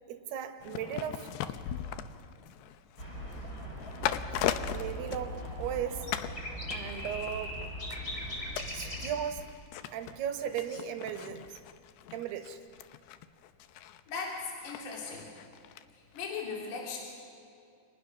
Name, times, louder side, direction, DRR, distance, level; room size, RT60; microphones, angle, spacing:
voice 1, 0.1-1.3 4.3-6.1 6.7-7.6 8.7-9.5 9.9-11.6 12.1-12.6, right 9 dB, 70° right, 7 dB, 2.7 m, -37 dB
sound 1, 0.6-5.8 6.1-6.4 6.7-15.8 16.1-16.2, left 11 dB, 80° left, 2.4 m, -39 dB
sound 2, 3.0-9.1, equal, 20° left, 4.9 m, -39 dB
voice 2, 14.1-15.3 16.1-17.0, left 5 dB, 60° left, -2 dB, 5.5 m, -37 dB
29.0 x 25.5 x 6.2 m, 2.4 s
omnidirectional pair, 5.6 m